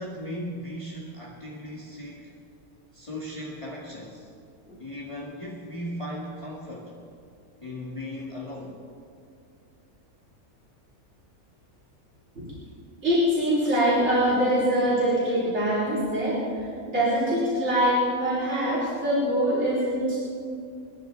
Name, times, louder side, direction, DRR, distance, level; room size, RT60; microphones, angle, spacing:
voice 1, 0.0-2.3 2.9-4.3 4.8-7.0 7.6-8.8, equal, 20° left, -5 dB, 1.9 m, -37 dB
voice 2, 13.0-20.2, equal, 50° right, -10 dB, 4.7 m, -24 dB
28.0 x 10.5 x 4.6 m, 2.3 s
omnidirectional pair, 1.6 m